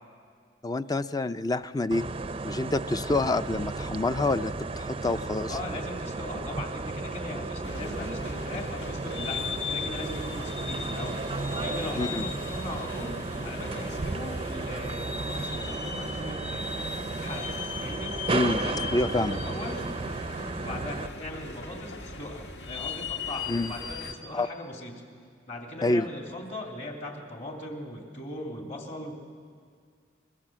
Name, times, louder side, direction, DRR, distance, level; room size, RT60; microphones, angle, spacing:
voice 1, 0.6-2.0 2.4-5.6 12.0-12.3 18.3-18.6 18.9-19.4 23.5-23.7 24.3-24.5 25.8-26.1, left 2 dB, 20° left, 12 dB, 0.5 m, -27 dB
sound 1, 1.9-21.1, right 3 dB, 30° right, 0.5 m, -34 dB
voice 2, 5.5-11.2 11.6-13.2 13.4-17.5 17.8-18.2 18.6-19.8 20.6-25.0 25.5-29.1, left 1 dB, 40° left, 2 dB, 2.9 m, -39 dB
sound 2, 7.6-24.1, left 4 dB, 70° left, 1.6 m, -38 dB
24.0 x 22.0 x 7.5 m, 2.1 s
head